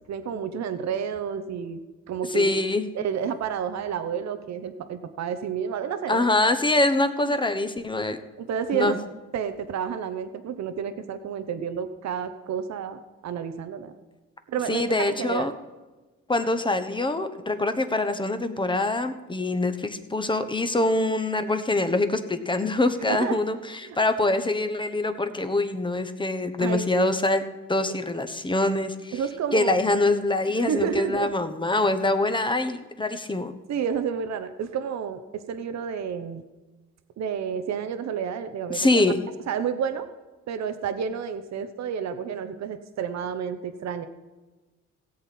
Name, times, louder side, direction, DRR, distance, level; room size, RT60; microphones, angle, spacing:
voice 1, 0.1-1.8 2.1-2.5 2.9-6.3 7.2-7.3 8.4-9.0 9.3-13.9 14.5-15.5 23.1-23.4 23.8-24.0 26.6-27.1 29.1-29.8 30.6-31.3 33.7-36.4 37.2-39.1 39.5-40.1 40.5-44.1, right 7 dB, 60° right, 10 dB, 0.9 m, -30 dB
voice 2, 2.3-2.9 6.1-8.2 8.7-9.0 14.7-15.5 16.3-23.6 24.0-27.4 27.7-29.1 29.5-33.5 38.7-39.2, left 2 dB, 15° left, 9 dB, 1.1 m, -24 dB
17.5 x 7.9 x 4.3 m, 1.2 s
cardioid pair, 90°, 30 cm